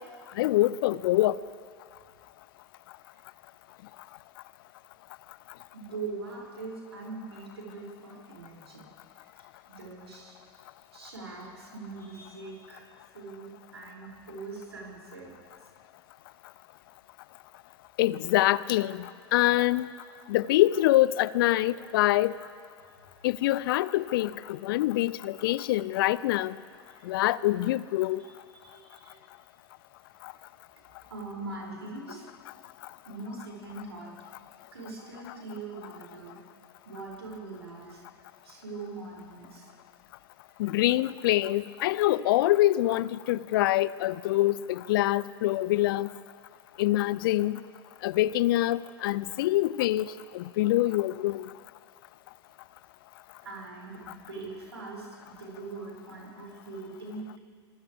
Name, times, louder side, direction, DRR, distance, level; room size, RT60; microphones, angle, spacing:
voice 1, 0.4-1.4 18.0-19.0 19.3-19.9 20.3-22.3 23.2-24.3 24.6-26.5 27.1-28.2 40.6-46.1 46.8-47.6 48.0-50.1 50.3-51.4, left 16 dB, 55° left, 20 dB, 0.5 m, -25 dB
voice 2, 5.7-8.9 9.7-10.4 10.9-12.8 13.1-15.3 26.9-27.1 28.2-29.2 31.1-32.3 33.0-34.1 34.7-36.4 36.8-38.0 38.4-39.7 53.4-57.4, right 3 dB, 80° right, -3 dB, 7.0 m, -42 dB
28.0 x 25.5 x 3.6 m, 2.1 s
figure-of-eight pair, 90°, 14 cm